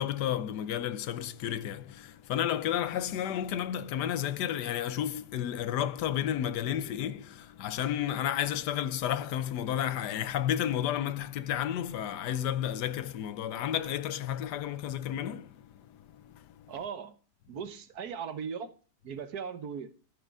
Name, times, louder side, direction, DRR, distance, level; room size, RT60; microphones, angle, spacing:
voice 1, 0.0-16.7, left 10 dB, 80° left, 1.3 m, -32 dB
voice 2, 16.7-17.1 17.5-18.7 19.0-19.9, right 6 dB, 65° right, 1.5 m, -38 dB
13.5 x 6.6 x 4.7 m
omnidirectional pair, 1.8 m